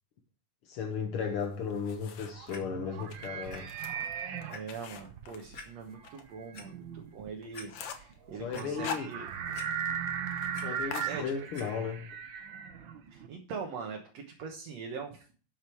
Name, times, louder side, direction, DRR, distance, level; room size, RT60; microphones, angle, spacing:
voice 1, 0.6-3.7 8.4-9.1 10.6-12.1, left 6 dB, 60° left, 4 dB, 1.6 m, -35 dB
sound 1, 1.4-2.5 3.0-6.2 6.6-6.7 7.1-7.2 7.4-8.1 8.5-9.6 9.9-10.0 10.3-10.5 10.9-11.8, left 6 dB, 80° left, 2.8 m, -43 dB
sound 2, 1.8-13.3, right 8 dB, 85° right, 1.0 m, -38 dB
Clock, 2.5-2.6 3.5-3.6 4.0-4.1 4.5-4.6 5.5-5.7 6.3-6.6 7.2-7.3 7.5-7.7 8.1-8.7 9.5-10.1 10.3-10.7 11.5-11.7 12.4-12.5, left 3 dB, 35° left, 2.1 m, -46 dB
voice 2, 4.5-9.3 11.1-11.2 13.1-15.3, right 5 dB, 60° right, 1 dB, 2.3 m, -42 dB
12.0 x 6.8 x 4.6 m, 0.39 s
omnidirectional pair, 3.6 m